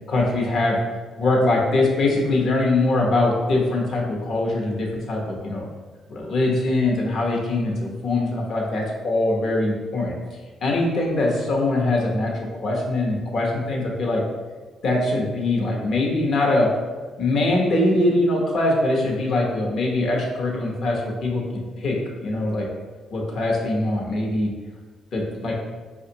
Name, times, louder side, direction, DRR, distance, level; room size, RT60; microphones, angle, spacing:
voice 1, 0.1-0.8 1.2-5.7 6.1-10.1 10.6-14.2 14.8-16.7 17.2-22.7 23.1-24.5 25.1-25.5, left 2 dB, 60° left, -1 dB, 0.9 m, -22 dB
5.2 x 2.3 x 2.8 m, 1.4 s
cardioid pair, 90°, 0 cm